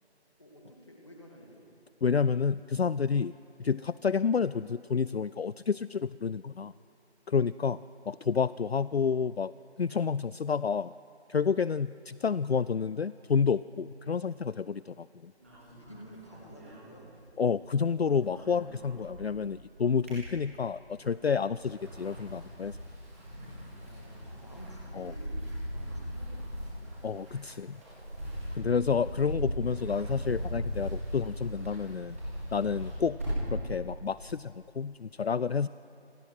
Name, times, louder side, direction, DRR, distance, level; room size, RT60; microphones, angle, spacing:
voice 1, 0.4-1.7 8.1-8.3 15.8-17.1 23.8-26.9, equal, 25° left, -1 dB, 2.4 m, -51 dB
voice 2, 2.0-3.3 3.6-6.7 7.3-7.8 8.1-9.5 9.8-10.9 11.3-15.3 17.4-22.8 24.9-25.1 27.0-27.8 28.5-32.2 32.5-33.2 33.5-35.7, left 6 dB, 65° left, 17 dB, 0.5 m, -29 dB
sound 1, 15.4-17.6 17.8-19.4 19.8-20.9 21.4-33.6, equal, 15° right, 4.6 m, -39 dB
27.5 x 20.5 x 6.1 m, 2.7 s
figure-of-eight pair, 180°, 33 cm